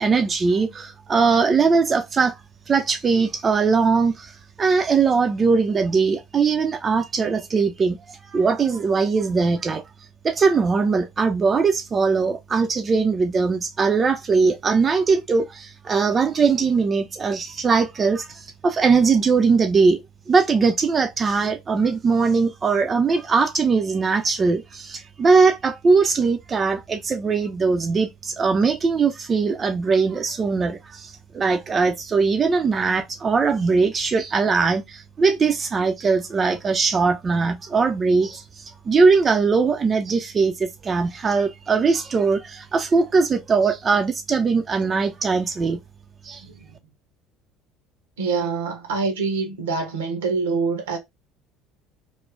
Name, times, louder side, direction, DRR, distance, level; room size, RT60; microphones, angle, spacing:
voice 1, 0.0-2.4 2.7-4.3 4.6-9.8 10.2-45.8 46.2-46.4, right 4 dB, 30° right, 0.4 m, -20 dB
voice 2, 48.2-51.0, right 4 dB, 75° right, 0.7 m, -25 dB
2.5 x 2.1 x 3.0 m
figure-of-eight pair, 60°, 0 cm